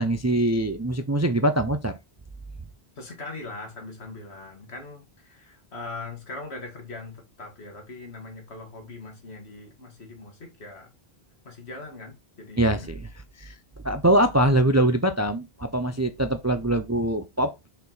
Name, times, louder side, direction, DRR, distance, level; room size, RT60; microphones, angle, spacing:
voice 1, 0.0-2.0 12.6-13.0 13.4-13.6 13.8-17.5, right 1 dB, 25° right, 0.4 m, -23 dB
voice 2, 3.0-10.9 11.4-12.7, left 3 dB, 80° left, 2.2 m, -40 dB
5.6 x 4.5 x 4.0 m
omnidirectional pair, 1.1 m